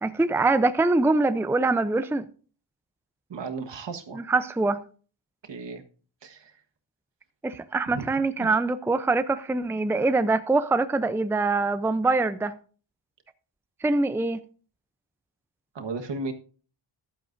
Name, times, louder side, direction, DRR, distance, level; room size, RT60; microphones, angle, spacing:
voice 1, 0.0-2.2 4.1-4.8 7.4-12.5 13.8-14.4, right 3 dB, 5° right, 0.5 m, -24 dB
voice 2, 3.3-4.2 5.5-5.8 6.2-6.5 7.9-8.0 8.4-8.5 15.7-16.3, right 4 dB, 65° right, 1.4 m, -34 dB
14.0 x 11.0 x 2.6 m
cardioid pair, 70°, 47 cm